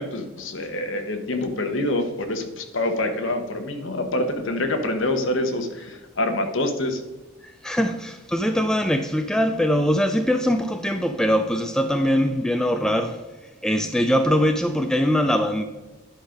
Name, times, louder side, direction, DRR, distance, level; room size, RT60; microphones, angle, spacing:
voice 1, 0.0-7.0, left 1 dB, 60° left, 1.1 m, -26 dB
voice 2, 7.6-13.2 13.6-15.6, equal, 5° left, 0.4 m, -22 dB
10.5 x 5.1 x 5.1 m
head